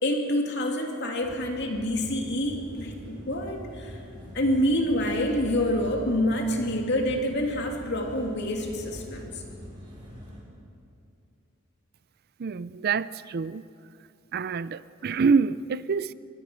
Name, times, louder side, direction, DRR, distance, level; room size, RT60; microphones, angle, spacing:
voice 1, 0.0-4.0 4.3-9.3, left 1 dB, 55° left, 2 dB, 2.7 m, -27 dB
sound 1, 1.2-10.4, equal, 20° right, 5.6 m, -43 dB
voice 2, 12.4-13.6 14.3-16.1, right 5 dB, 45° right, 17 dB, 0.4 m, -26 dB
24.0 x 19.5 x 6.2 m, 2.6 s
head